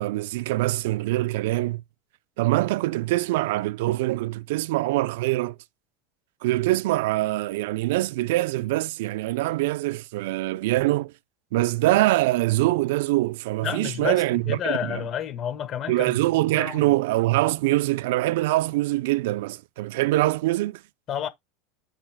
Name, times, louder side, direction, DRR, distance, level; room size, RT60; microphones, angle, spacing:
voice 1, 0.0-1.8 2.4-5.6 6.4-11.1 11.5-15.0 15.9-20.8, right 18 dB, 70° right, 0.4 m, -24 dB
voice 2, 13.6-16.2 16.5-17.0 21.1-21.3, left 9 dB, 30° left, 1.2 m, -30 dB
13.5 x 4.9 x 2.2 m
supercardioid pair, 155°, 0 cm